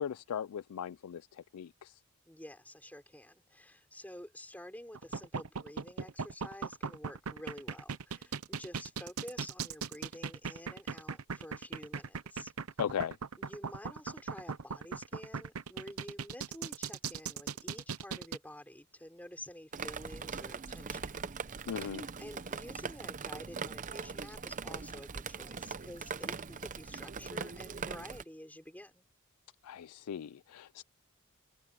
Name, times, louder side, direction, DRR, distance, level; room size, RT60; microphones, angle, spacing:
voice 1, 0.0-2.0 12.8-13.2 21.7-22.1 29.6-30.8, left 8 dB, 90° left, 0.4 m, -38 dB
voice 2, 2.3-12.5 13.4-21.1 21.7-29.1, left 1 dB, 5° left, 5.4 m, -50 dB
sound 1, 4.9-18.4, right 5 dB, 80° right, 0.8 m, -38 dB
Drip, 19.7-28.2, right 5 dB, 35° right, 0.6 m, -41 dB
head